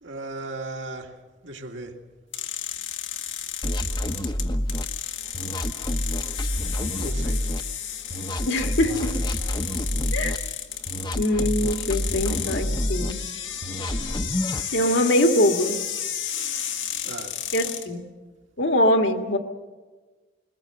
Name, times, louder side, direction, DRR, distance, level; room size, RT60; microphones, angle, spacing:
voice 1, 0.0-1.2 1.4-2.0 7.0-7.5 17.0-17.4, right 2 dB, 75° right, 2.1 m, -36 dB
sound 1, 2.3-17.9, left 9 dB, 85° left, 1.8 m, -33 dB
sound 2, 3.6-4.9 5.3-7.6 8.1-10.4 10.9-13.1 13.6-14.7, equal, 25° left, 0.7 m, -28 dB
voice 2, 8.5-9.1 10.1-10.4 11.1-13.2 14.7-15.8 17.5-18.1 18.6-19.4, left 1 dB, 70° left, 1.8 m, -22 dB
22.0 x 20.5 x 7.8 m
head